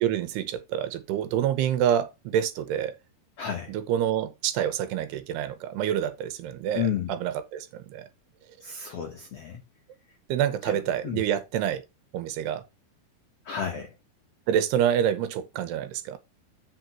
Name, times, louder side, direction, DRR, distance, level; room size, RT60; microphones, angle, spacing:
voice 1, 0.0-2.9 3.7-8.1 10.3-11.8 12.1-12.6 14.5-16.2, right 10 dB, 85° right, 3.1 m, -27 dB
voice 2, 3.4-3.7 6.7-7.2 8.6-9.6 10.6-11.2 13.4-13.9, left 7 dB, 80° left, 1.4 m, -32 dB
8.4 x 5.3 x 4.5 m
omnidirectional pair, 4.7 m